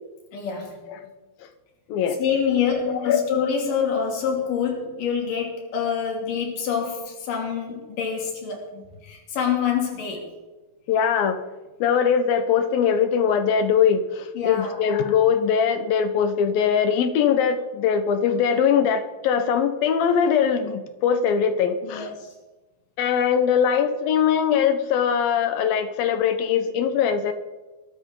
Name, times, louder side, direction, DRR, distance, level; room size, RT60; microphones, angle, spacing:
voice 1, 0.3-0.8 2.2-10.3 14.3-14.8 18.7-18.8 21.8-22.3, left 7 dB, 65° left, 0 dB, 4.3 m, -26 dB
voice 2, 2.9-3.3 10.9-11.4 11.8-22.1 23.0-27.3, left 7 dB, 85° left, 9 dB, 3.0 m, -21 dB
22.0 x 13.5 x 3.9 m, 1.2 s
omnidirectional pair, 4.0 m